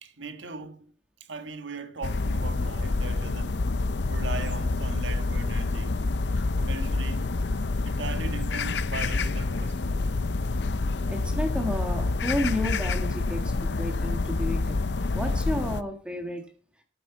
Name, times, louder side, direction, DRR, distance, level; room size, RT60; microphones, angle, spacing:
voice 1, 0.0-0.9 1.2-3.7 4.1-6.0 6.6-7.3 7.8-10.1, right 3 dB, 85° right, 1.6 m, -39 dB
sound 1, 2.0-15.8, left 3 dB, 70° left, 0.6 m, -27 dB
voice 2, 10.6-14.8 15.1-16.4, left 1 dB, 5° right, 1.7 m, -32 dB
14.0 x 7.8 x 4.0 m
head